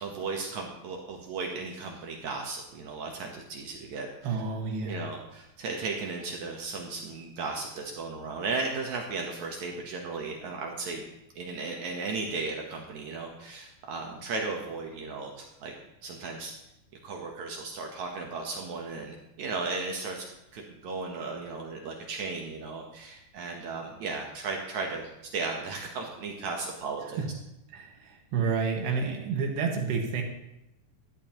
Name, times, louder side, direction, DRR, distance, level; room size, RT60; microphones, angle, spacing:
voice 1, 0.0-4.1 4.8-11.0 11.3-15.7 16.0-16.5 17.0-20.2 20.5-27.2, right 4 dB, 70° right, 1 dB, 1.8 m, -35 dB
voice 2, 4.2-5.0 27.2-27.3 27.7-30.2, right 5 dB, 90° right, 1 dB, 3.6 m, -30 dB
13.5 x 10.5 x 2.9 m, 0.89 s
omnidirectional pair, 4.7 m